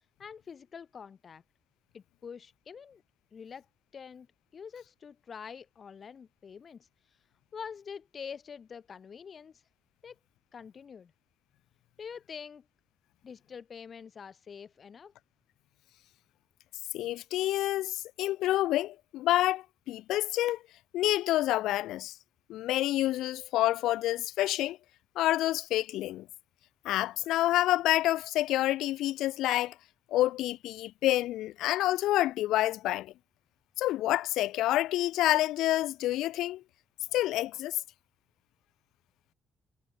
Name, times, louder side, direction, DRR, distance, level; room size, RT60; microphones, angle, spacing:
voice 1, 0.2-1.4 1.9-3.0 3.3-3.7 3.9-4.3 4.5-7.2 7.5-9.6 10.0-10.2 10.5-11.1 12.0-12.6 13.2-15.1, left 6 dB, 45° left, 3.8 m, -45 dB
voice 2, 16.9-20.6 20.9-22.1 22.5-24.8 25.2-26.3 26.8-29.7 30.1-33.1 33.8-36.6 37.1-37.8, left 15 dB, 90° left, 0.9 m, -28 dB
cardioid pair, 90°, 0 cm